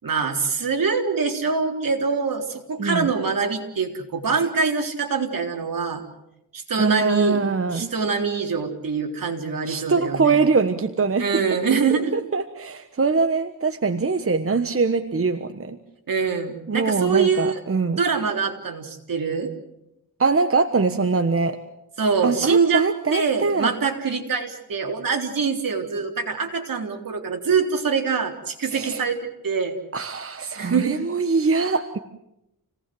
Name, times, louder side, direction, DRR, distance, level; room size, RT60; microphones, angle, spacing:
voice 1, 0.0-6.0 6.5-7.4 7.7-10.4 11.2-12.1 16.1-17.6 18.0-19.5 22.0-22.8 23.1-29.8 30.5-31.0, right 5 dB, 65° right, 2 dB, 3.9 m, -24 dB
voice 2, 2.8-3.1 6.8-7.9 9.6-11.4 12.1-15.8 16.7-18.0 20.2-21.6 22.2-23.7 28.7-29.0 29.9-32.0, right 4 dB, 40° right, 8 dB, 1.3 m, -23 dB
28.5 x 18.5 x 7.8 m, 0.87 s
wide cardioid pair, 90°, 36 cm